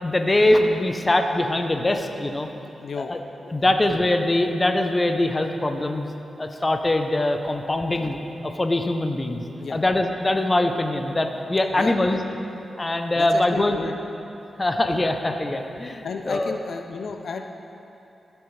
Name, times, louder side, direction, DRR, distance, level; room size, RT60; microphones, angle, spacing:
voice 1, 0.0-2.5 3.0-3.2 3.5-6.1 6.4-8.2 8.4-9.4 9.7-12.2 12.8-13.8 14.6-16.5, left 1 dB, 25° left, 5 dB, 0.6 m, -22 dB
voice 2, 2.8-3.1 3.6-3.7 9.6-9.8 11.7-12.0 13.1-13.9 16.0-17.5, left 5 dB, 70° left, 5 dB, 0.4 m, -32 dB
14.0 x 6.1 x 3.2 m, 2.9 s
cardioid pair, 90°, 0 cm